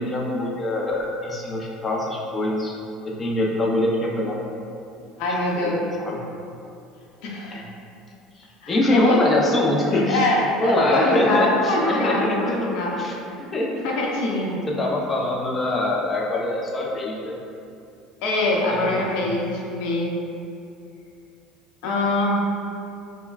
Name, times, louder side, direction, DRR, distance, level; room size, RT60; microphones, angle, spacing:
voice 1, 0.0-2.7 3.0-4.4 5.6-5.7 6.0-6.3 7.5-7.7 8.4-10.2 10.6-12.4 13.0-13.9 14.7-17.4 18.7-19.2, left 1 dB, 25° left, -2 dB, 0.6 m, -24 dB
voice 2, 5.2-5.8 7.2-7.6 8.6-9.2 9.9-13.0 13.8-14.6 18.2-20.2 21.8-22.4, left 1 dB, 75° left, -3 dB, 0.7 m, -23 dB
5.3 x 2.2 x 2.3 m, 2.6 s
cardioid pair, 125°, 0 cm